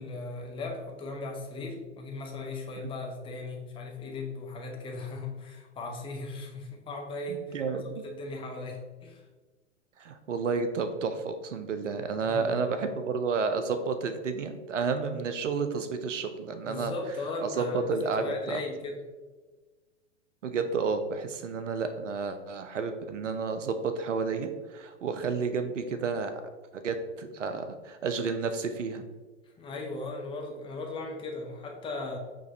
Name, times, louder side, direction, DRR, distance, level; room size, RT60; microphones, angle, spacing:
voice 1, 0.0-9.2 12.2-12.7 16.6-19.0 29.6-32.2, left 2 dB, 15° left, 1 dB, 0.6 m, -37 dB
voice 2, 7.3-8.0 10.0-16.9 17.4-18.6 20.4-26.4 26.7-29.0, right 5 dB, 80° right, 9 dB, 0.5 m, -31 dB
6.1 x 2.9 x 2.7 m, 1.3 s
figure-of-eight pair, 100°, 36 cm